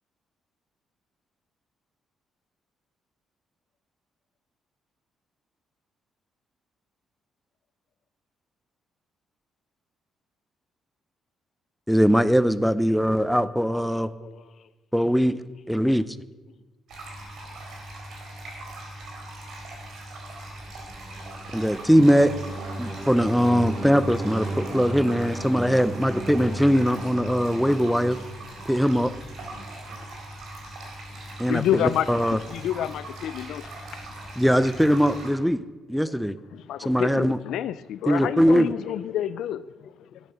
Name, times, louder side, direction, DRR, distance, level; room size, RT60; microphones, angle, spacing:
voice 1, 11.9-14.1 14.9-15.4 15.7-16.1 21.5-22.3 22.8-28.2 28.7-29.1 31.4-32.4 34.4-35.6 35.9-36.4 36.8-37.4 38.1-38.7, equal, ahead, 0.6 m, -21 dB
voice 2, 12.8-13.3 13.9-14.7 15.7-15.9 16.5-16.6 38.6-39.4 39.8-40.2, left 7 dB, 60° left, 0.8 m, -48 dB
sound 1, 16.9-35.3, right 1 dB, 70° right, 4.2 m, -40 dB
sound 2, 20.6-29.3, right 1 dB, 35° right, 4.4 m, -36 dB
voice 3, 31.5-33.7 36.5-39.6, left 11 dB, 80° left, 0.4 m, -28 dB
12.5 x 9.5 x 6.7 m
cardioid pair, 90°, 0 cm